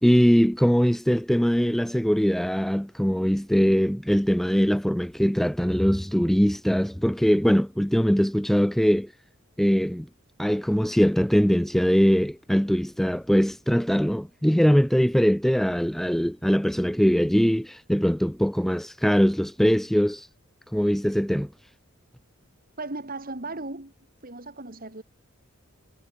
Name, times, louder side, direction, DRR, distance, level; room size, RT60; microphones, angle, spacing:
voice 1, 0.0-9.1 9.6-10.1 10.4-20.3 20.7-21.5, equal, ahead, 0.5 m, -22 dB
voice 2, 22.8-23.9 24.2-25.0, right 2 dB, 45° right, 3.4 m, -36 dB
head